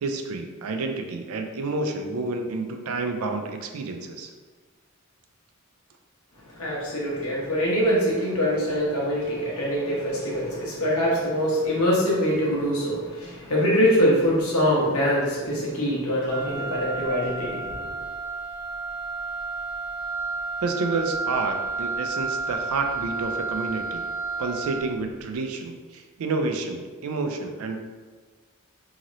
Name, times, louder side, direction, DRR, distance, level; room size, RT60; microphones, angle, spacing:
voice 1, 0.0-4.3 20.6-24.1 24.4-27.8, right 3 dB, 80° right, 5 dB, 0.4 m, -29 dB
voice 2, 6.6-17.9, equal, 90° left, -5 dB, 1.0 m, -24 dB
Wind instrument woodwind instrument, 16.3-25.0, right 3 dB, 60° right, 0.9 m, -31 dB
3.0 x 2.8 x 2.5 m, 1.4 s
head